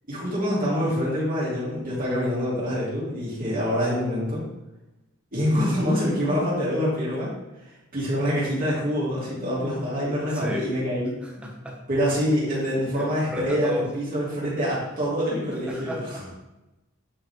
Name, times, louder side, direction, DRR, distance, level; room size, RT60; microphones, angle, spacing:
voice 1, 0.1-4.4 5.3-7.3 7.9-11.1 11.9-16.2, equal, 40° right, -8 dB, 3.0 m, -25 dB
voice 2, 10.3-10.7 11.2-11.8 12.5-13.9 15.7-16.3, left 1 dB, 5° right, -3 dB, 1.5 m, -33 dB
8.9 x 5.7 x 3.5 m, 0.99 s
head